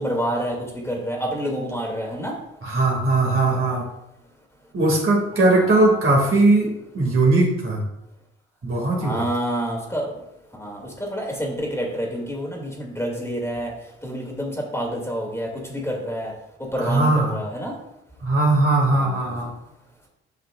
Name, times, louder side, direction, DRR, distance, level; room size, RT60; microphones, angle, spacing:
voice 1, 0.0-2.3 5.5-6.0 9.0-10.1 10.6-13.7 14.0-16.3 16.7-17.7 18.9-19.2, equal, 10° left, -1 dB, 2.5 m, -28 dB
voice 2, 2.6-3.9 4.7-7.8 8.6-9.2 16.8-17.4 18.2-19.5, right 2 dB, 45° right, -1 dB, 2.4 m, -19 dB
9.1 x 5.6 x 2.5 m, 0.85 s
hypercardioid pair, 50°, 30 cm